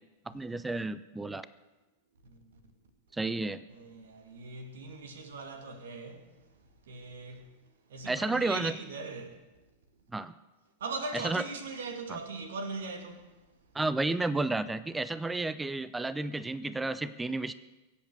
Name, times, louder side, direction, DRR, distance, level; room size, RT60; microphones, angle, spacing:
voice 1, 0.3-1.5 3.1-3.6 8.1-8.8 10.1-10.3 11.1-11.4 12.1-12.2 13.7-17.5, right 2 dB, 10° right, 0.6 m, -31 dB
voice 2, 3.7-6.4 6.9-7.5 7.9-9.4 10.8-13.3, right 3 dB, 65° right, 2.1 m, -40 dB
23.5 x 8.1 x 6.7 m
figure-of-eight pair, 90°, 0 cm